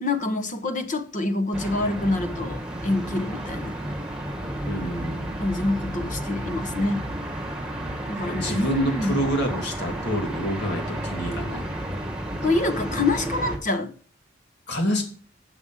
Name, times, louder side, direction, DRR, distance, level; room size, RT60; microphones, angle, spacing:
voice 1, 0.0-3.7 5.4-7.1 8.1-9.2 12.4-13.9, left 2 dB, 40° left, 1.0 m, -26 dB
sound 1, 1.5-13.6, right 1 dB, 5° right, 1.7 m, -32 dB
voice 2, 4.7-5.3 8.2-11.6 14.7-15.0, right 1 dB, 60° left, 2.7 m, -27 dB
8.3 x 6.0 x 7.4 m
head